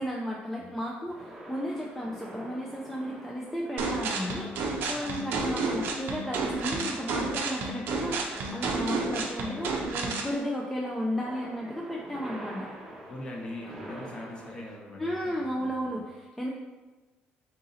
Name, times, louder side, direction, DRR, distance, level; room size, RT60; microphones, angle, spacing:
voice 1, 0.0-4.5 4.8-12.7 15.0-16.5, equal, 5° left, -2 dB, 0.4 m, -34 dB
sound 1, 1.1-14.8, right 1 dB, 10° right, 0.8 m, -46 dB
sound 2, 3.8-10.3, right 3 dB, 65° right, 0.6 m, -31 dB
voice 2, 13.1-15.7, left 1 dB, 25° left, -1 dB, 0.8 m, -41 dB
3.8 x 2.7 x 3.9 m, 1.3 s
cardioid pair, 120°, 4 cm